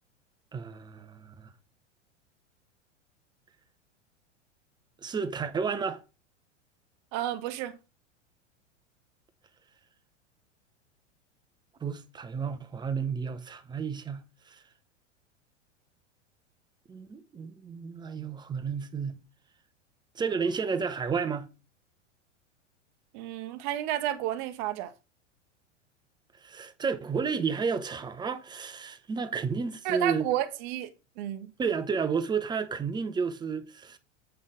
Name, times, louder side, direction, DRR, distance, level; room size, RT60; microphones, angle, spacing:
voice 1, 0.5-1.5 5.0-6.0 11.8-14.6 16.9-19.2 20.1-21.5 26.4-30.3 31.6-34.0, right 5 dB, 10° right, 0.9 m, -31 dB
voice 2, 7.1-7.8 23.1-24.9 29.8-30.9 31.2-31.5, right 13 dB, 40° right, 1.0 m, -31 dB
8.0 x 5.5 x 5.1 m
figure-of-eight pair, 90°, 36 cm